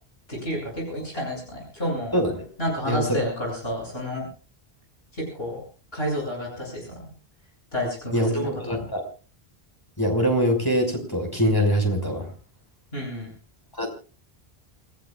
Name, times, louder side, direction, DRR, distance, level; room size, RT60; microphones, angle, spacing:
voice 1, 0.3-2.1 2.6-4.3 5.1-5.6 5.9-6.9 7.7-8.8 12.9-13.3, equal, 70° left, -1 dB, 8.5 m, -30 dB
voice 2, 2.1-2.4 2.8-3.2 8.1-9.0 10.0-12.3 13.8-13.9, equal, 20° left, 2 dB, 5.8 m, -23 dB
28.5 x 17.5 x 2.5 m, 0.36 s
omnidirectional pair, 1.1 m